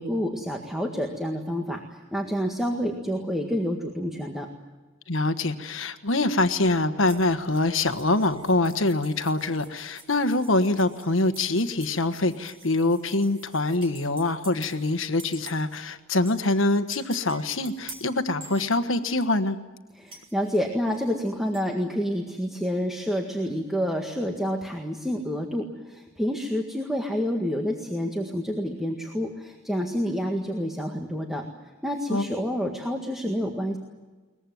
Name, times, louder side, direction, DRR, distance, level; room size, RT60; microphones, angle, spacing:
voice 1, 0.0-4.5 20.0-31.4 31.8-33.8, equal, ahead, 1 dB, 1.8 m, -28 dB
voice 2, 5.1-19.6 32.1-32.2, left 2 dB, 70° left, 9 dB, 1.4 m, -24 dB
sound 1, 7.1-14.9 15.2-15.8 16.3-19.3 20.1-21.7, right 2 dB, 30° right, 4.3 m, -48 dB
22.5 x 21.0 x 9.4 m, 1.3 s
head